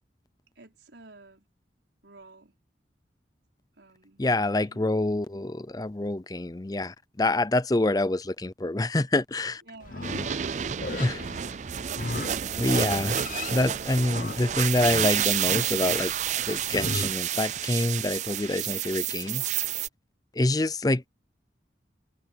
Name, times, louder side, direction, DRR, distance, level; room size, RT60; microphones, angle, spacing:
voice 1, 0.6-1.5 2.0-2.6 3.7-4.3 4.5-5.2 9.6-10.6 12.0-12.7 13.4-13.7, right 2 dB, 80° right, 5.2 m, -50 dB
voice 2, 4.2-9.6 11.0-11.2 12.6-13.2 13.5-16.1 16.4-19.4 20.4-21.0, left 2 dB, 20° left, 0.5 m, -26 dB
Livestock farm animals working animals, 9.8-17.1, left 3 dB, 45° left, 0.9 m, -38 dB
sound 1, 10.0-19.9, right 10 dB, 40° right, 0.4 m, -30 dB
head